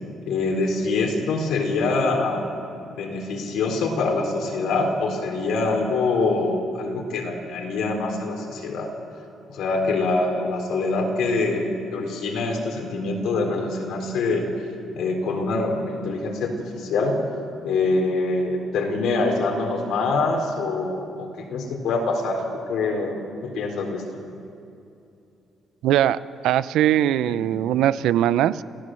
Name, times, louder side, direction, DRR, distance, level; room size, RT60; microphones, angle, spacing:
voice 1, 0.2-2.4 2.9-8.9 9.5-14.5 14.9-17.2 17.6-22.4 22.7-24.0 27.3-27.5, left 3 dB, 70° left, 2 dB, 3.9 m, -25 dB
voice 2, 25.8-26.2 26.4-28.6, right 12 dB, 75° right, 15 dB, 0.6 m, -20 dB
28.0 x 15.5 x 7.7 m, 2.7 s
cardioid pair, 180°, 0 cm